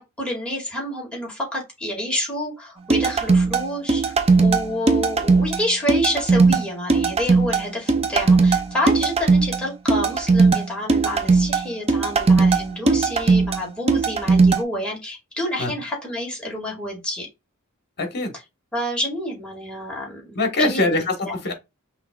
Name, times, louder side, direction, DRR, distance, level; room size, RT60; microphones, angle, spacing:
voice 1, 0.0-4.0 4.4-17.3 18.7-21.4, left 1 dB, 5° left, 2.1 m, -28 dB
sound 1, 2.9-14.6, right 4 dB, 25° right, 0.5 m, -18 dB
voice 2, 18.0-18.3 20.3-21.5, left 2 dB, 50° left, 1.3 m, -22 dB
5.6 x 3.3 x 2.3 m
head